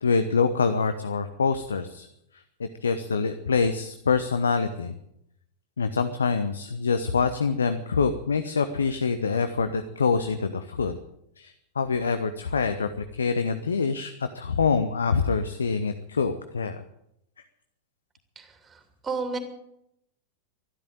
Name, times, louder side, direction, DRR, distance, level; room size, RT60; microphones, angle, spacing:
voice 1, 0.0-2.1 2.3-5.0 5.8-11.0 11.4-16.8, left 5 dB, 70° left, 10 dB, 0.9 m, -25 dB
voice 2, 18.4-19.4, right 4 dB, 15° right, 7 dB, 2.7 m, -33 dB
13.0 x 12.0 x 9.1 m, 0.80 s
figure-of-eight pair, 90°, 0 cm